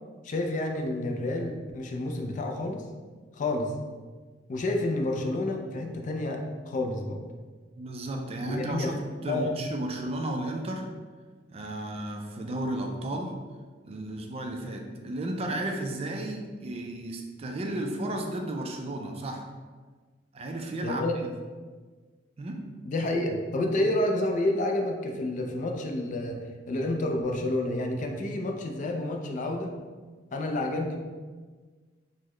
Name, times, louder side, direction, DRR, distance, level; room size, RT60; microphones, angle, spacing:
voice 1, 0.2-2.8 3.3-3.7 4.5-7.2 8.4-9.0 9.3-9.5 20.8-21.1 22.8-26.4 26.7-29.7 30.3-31.0, left 1 dB, 45° left, 3 dB, 0.4 m, -29 dB
voice 2, 7.8-10.9 11.5-13.4 13.8-19.5 20.3-21.0 22.4-22.6 23.8-23.9, right 1 dB, 35° right, 3 dB, 0.3 m, -33 dB
3.8 x 2.0 x 3.0 m, 1.4 s
head